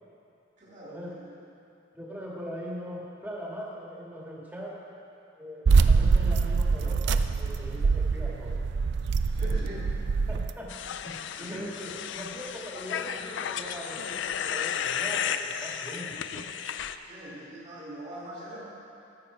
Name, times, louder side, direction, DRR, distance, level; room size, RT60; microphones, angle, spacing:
voice 1, 0.6-1.3 9.3-10.2 11.4-11.7 17.0-18.6, right 1 dB, 35° right, -8 dB, 1.8 m, -42 dB
voice 2, 1.9-4.8 5.4-8.7 9.5-9.6 10.3-16.5, equal, 10° right, -5 dB, 1.6 m, -41 dB
sound 1, 5.7-10.5, right 4 dB, 55° right, 0.4 m, -24 dB
sound 2, 10.7-17.0, left 8 dB, 60° left, 0.3 m, -33 dB
13.5 x 7.0 x 4.8 m, 2.7 s
head